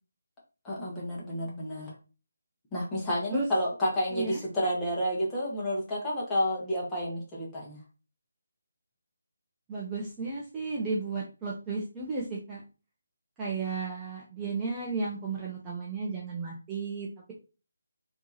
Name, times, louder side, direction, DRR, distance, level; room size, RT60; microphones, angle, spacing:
voice 1, 0.6-1.9 2.7-7.8, equal, 10° left, -5 dB, 1.4 m, -30 dB
voice 2, 9.7-12.6 13.4-17.3, right 4 dB, 15° right, -5 dB, 0.6 m, -34 dB
4.4 x 3.0 x 2.7 m, 0.33 s
figure-of-eight pair, 155°, 0 cm